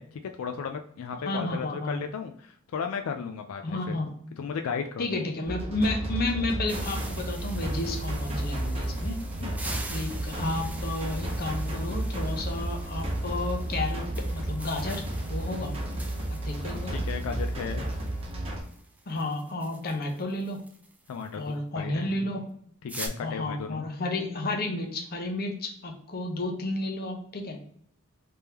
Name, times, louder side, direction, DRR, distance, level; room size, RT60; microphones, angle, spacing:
voice 1, 0.0-3.8 4.4-5.1 9.4-9.6 16.6-17.9 21.1-22.3 22.8-23.9, left 6 dB, 85° left, 6 dB, 0.4 m, -35 dB
voice 2, 1.2-2.0 3.6-4.1 5.0-9.2 9.9-15.0 15.3-15.7 16.3-16.9 19.1-20.6 21.3-22.4 23.2-27.6, left 2 dB, 45° left, 3 dB, 0.7 m, -32 dB
sound 1, 5.4-18.6, right 1 dB, 30° right, 1.0 m, -32 dB
sound 2, 6.7-21.3 22.9-23.1, right 2 dB, 5° right, 0.5 m, -45 dB
3.5 x 3.4 x 2.8 m, 0.65 s
head